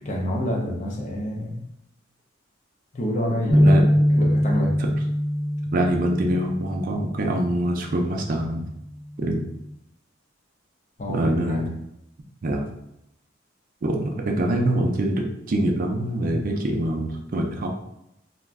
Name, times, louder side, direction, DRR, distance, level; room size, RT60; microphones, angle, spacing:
voice 1, 0.0-1.7 2.9-3.7 4.1-4.8 11.0-11.6, equal, 40° left, 0 dB, 0.5 m, -28 dB
sound 1, 3.5-7.8 8.2-8.5 9.3-9.7, equal, 75° left, 0.9 m, -22 dB
voice 2, 3.5-3.9 4.8-4.9 5.7-8.6 9.2-9.4 11.1-11.7 12.4-12.6 13.8-17.7, right 1 dB, 45° right, 2 dB, 0.4 m, -24 dB
2.4 x 2.1 x 3.4 m, 0.82 s
head